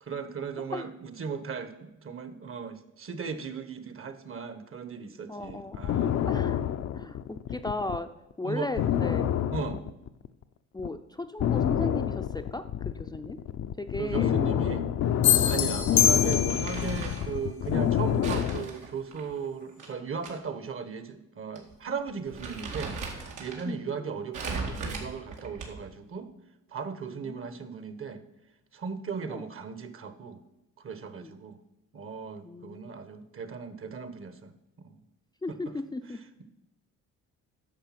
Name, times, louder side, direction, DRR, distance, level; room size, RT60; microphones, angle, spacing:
voice 1, 0.0-6.5 8.4-8.7 9.5-9.8 14.0-14.9 15.4-23.0 23.4-26.3 26.7-28.2 28.7-30.4 30.8-31.6 31.9-34.5 34.8-35.0 35.5-35.7 36.1-36.4, right 5 dB, 45° right, 11 dB, 1.2 m, -37 dB
voice 2, 5.3-5.8 6.3-6.6 6.9-7.2 7.5-8.1 8.4-9.3 10.7-12.6 13.0-13.4 13.8-14.4 23.7-24.1 27.1-27.4 29.2-29.4 31.2-31.3 32.4-33.0 35.4-36.2, left 2 dB, 15° left, 6 dB, 0.5 m, -36 dB
sound 1, 5.5-8.0 8.3-8.4 8.8-10.4 10.8-11.0 11.4-18.7, left 10 dB, 60° left, 0.6 m, -28 dB
sound 2, 15.2-16.9, left 10 dB, 75° left, 1.1 m, -24 dB
Crumpling crinkling, 16.3-17.3 18.2-20.3 20.7-20.8 21.6-21.7 22.1-23.6 24.3-25.9, right 4 dB, 85° right, 2.2 m, -38 dB
10.5 x 6.6 x 5.9 m, 0.90 s
cardioid pair, 90°, 30 cm